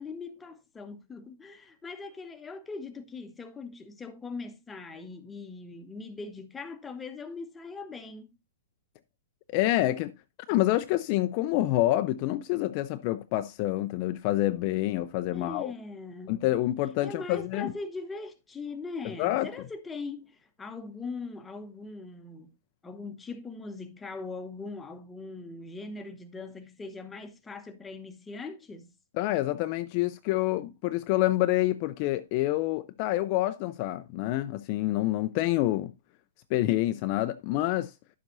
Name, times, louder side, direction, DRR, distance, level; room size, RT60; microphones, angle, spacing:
voice 1, 0.0-8.3 15.3-16.4 17.0-22.5 22.8-28.9, left 3 dB, 10° left, 1.0 m, -40 dB
voice 2, 9.5-10.1 10.5-15.7 16.3-17.7 19.2-19.5 29.2-35.9 36.5-37.9, left 15 dB, 40° left, 0.5 m, -27 dB
11.0 x 7.3 x 2.7 m
hypercardioid pair, 135°, 0 cm